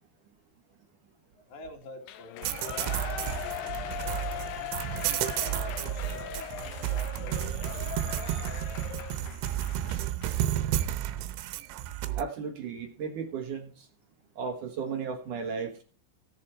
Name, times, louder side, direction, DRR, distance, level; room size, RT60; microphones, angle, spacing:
voice 1, 1.5-4.5 5.4-8.5, left 2 dB, 45° left, 3.3 m, -48 dB
Shout / Cheering, 2.0-10.4 10.8-10.9, left 11 dB, 75° left, 2.7 m, -39 dB
sound 1, 2.4-12.2, right 12 dB, 90° right, 3.2 m, -32 dB
voice 2, 12.2-13.9 14.4-15.8, right 6 dB, 65° right, 2.1 m, -35 dB
17.0 x 6.9 x 4.4 m
omnidirectional pair, 5.3 m